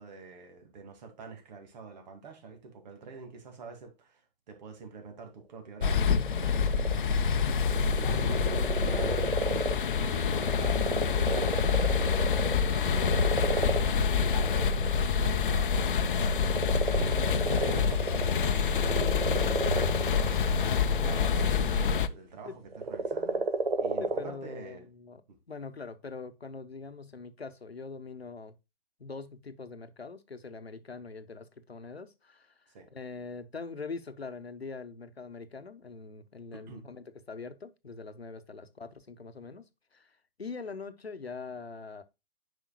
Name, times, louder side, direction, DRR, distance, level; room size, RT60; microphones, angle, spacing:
voice 1, 0.0-7.2 7.6-9.8 10.1-10.9 11.2-17.2 17.6-19.1 19.6-23.5 23.8-24.9 25.3-25.4 32.7-32.9 36.5-36.8, right 4 dB, 45° right, 2.3 m, -46 dB
sound 1, 5.8-22.1, left 6 dB, 60° left, 0.8 m, -27 dB
sound 2, 6.0-6.9 7.4-21.7 22.7-24.3, right 3 dB, 75° right, 1.5 m, -33 dB
voice 2, 24.0-25.2 25.5-28.5 29.0-32.5 32.9-39.7 39.9-40.1 40.4-42.0, left 4 dB, 90° left, 1.1 m, -43 dB
9.3 x 5.5 x 2.2 m
figure-of-eight pair, 130°, 30 cm